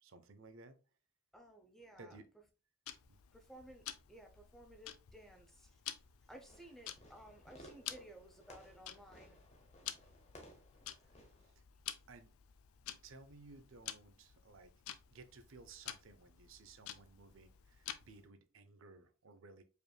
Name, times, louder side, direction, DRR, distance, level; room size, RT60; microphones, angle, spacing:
voice 1, 0.0-0.8 1.9-2.3 3.1-3.2 11.1-11.2 11.4-11.5 12.1-12.3 13.0-14.7 15.1-19.6, right 3 dB, 60° right, 0.5 m, -57 dB
voice 2, 1.3-2.2 3.3-5.7 6.3-9.4, right 1 dB, ahead, 0.6 m, -57 dB
Tick-tock, 2.9-18.3, left 11 dB, 80° left, 0.4 m, -51 dB
Fireworks, 6.3-11.5, equal, 30° left, 0.9 m, -60 dB
5.0 x 3.2 x 2.3 m
head